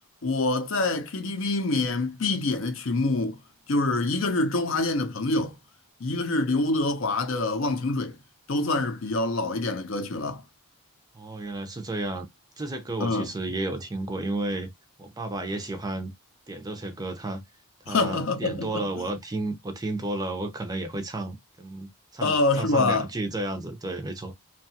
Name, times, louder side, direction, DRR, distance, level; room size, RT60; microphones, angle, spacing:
voice 1, 0.2-3.4 3.7-5.5 6.0-8.2 8.5-10.4 13.0-13.3 17.9-18.9 22.2-23.1, left 2 dB, 60° left, 0.6 m, -26 dB
voice 2, 11.1-12.3 12.6-14.7 15.0-16.1 16.5-17.4 17.8-24.3, right 2 dB, 15° right, 0.4 m, -32 dB
2.8 x 2.3 x 2.7 m
head